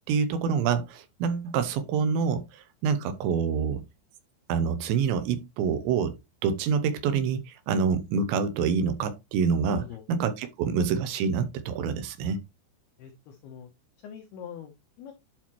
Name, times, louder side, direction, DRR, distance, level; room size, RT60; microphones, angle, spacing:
voice 1, 0.1-3.8 4.5-12.4, right 6 dB, 80° right, 2.7 m, -27 dB
voice 2, 9.7-10.1 13.0-13.7 14.0-15.1, left 9 dB, 85° left, 2.2 m, -43 dB
11.5 x 4.3 x 3.0 m
omnidirectional pair, 5.9 m